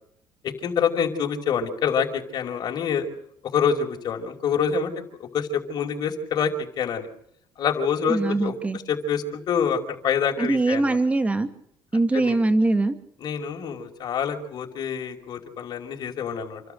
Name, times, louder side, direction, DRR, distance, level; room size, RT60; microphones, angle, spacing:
voice 1, 0.4-3.1 3.4-4.9 5.2-7.1 7.6-8.5 8.9-11.0 12.1-12.4 13.2-16.6, left 7 dB, 50° left, 3 dB, 5.3 m, -26 dB
voice 2, 8.1-8.8 10.4-11.5 11.9-13.0, right 2 dB, 15° right, 9 dB, 2.2 m, -22 dB
29.0 x 13.0 x 8.0 m, 0.71 s
cardioid pair, 110°, 9 cm